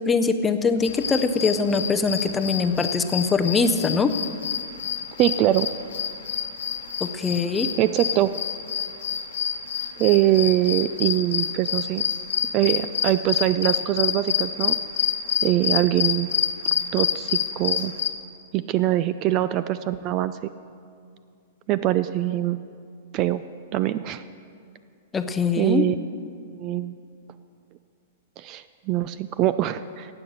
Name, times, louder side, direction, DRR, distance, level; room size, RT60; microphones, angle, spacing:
voice 1, 0.0-4.1 7.0-7.7 25.1-25.9, left 4 dB, 10° left, 9 dB, 0.6 m, -22 dB
sound 1, 0.8-18.1, left 8 dB, 90° left, 1.2 m, -27 dB
voice 2, 5.2-5.7 7.8-8.3 10.0-12.0 12.5-14.7 15.4-16.3 16.9-17.9 18.5-20.4 21.7-22.6 23.1-23.4 23.7-24.2 25.6-26.0 26.6-27.0 28.4-30.1, right 14 dB, 30° right, 14 dB, 0.3 m, -23 dB
15.5 x 8.8 x 6.5 m, 2.3 s
hypercardioid pair, 155°, 0 cm